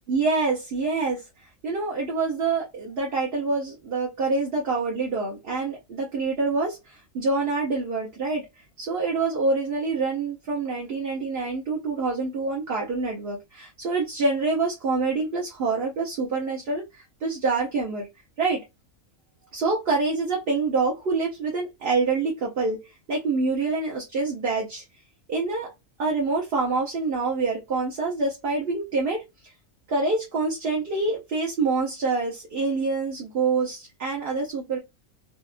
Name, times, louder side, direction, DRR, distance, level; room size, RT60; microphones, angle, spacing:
voice 1, 0.1-8.5 8.8-18.1 18.4-18.6 19.5-24.8 25.3-25.7 26.0-29.2 29.9-34.8, right 3 dB, 55° right, 0.8 m, -26 dB
2.8 x 2.3 x 2.4 m
omnidirectional pair, 1.4 m